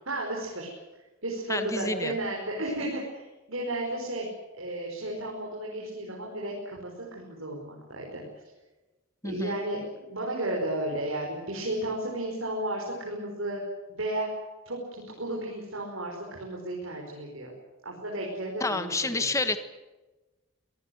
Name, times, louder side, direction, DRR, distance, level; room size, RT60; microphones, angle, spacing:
voice 1, 0.1-0.7 1.2-4.3 4.5-8.2 9.2-9.8 10.1-13.6 13.9-14.3 14.7-17.5 17.8-19.2, right 1 dB, 75° right, -1 dB, 5.6 m, -33 dB
voice 2, 1.5-2.2 9.2-9.6 18.6-19.6, left 3 dB, 15° left, 10 dB, 1.3 m, -29 dB
24.0 x 19.0 x 8.0 m, 1.1 s
head